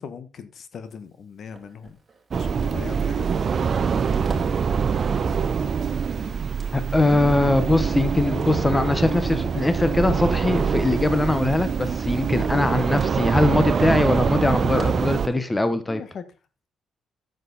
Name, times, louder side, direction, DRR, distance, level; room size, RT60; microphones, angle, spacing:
voice 1, 0.0-2.0 2.3-3.7 15.9-16.2, left 6 dB, 55° left, 12 dB, 1.3 m, -39 dB
Crackle, 1.5-3.7 4.0-15.3, right 4 dB, 25° right, 4.1 m, -44 dB
sound 1, 2.3-15.3, right 6 dB, 45° right, 0.8 m, -24 dB
voice 2, 6.7-16.0, left 2 dB, 15° left, 11 dB, 1.1 m, -22 dB
9.7 x 7.9 x 4.1 m, 0.31 s
cardioid pair, 90°, 0 cm